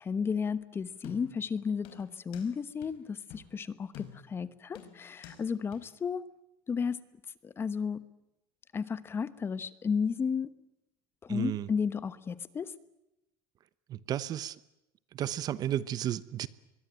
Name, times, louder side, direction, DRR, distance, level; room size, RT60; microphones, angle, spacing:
voice 1, 0.0-6.2 6.7-7.0 7.4-8.0 8.7-10.5 11.2-12.7, left 6 dB, 25° left, 1.1 m, -33 dB
sound 1, 1.0-1.5 1.8-2.5 2.8-2.9 3.3-3.5 3.9-4.4 4.7-5.4 5.7-5.8, left 9 dB, 65° left, 4.8 m, -48 dB
voice 2, 11.3-11.7 14.1-14.5 15.2-16.5, right 11 dB, 45° right, 0.9 m, -32 dB
24.0 x 22.5 x 9.1 m
cardioid pair, 140°, 9 cm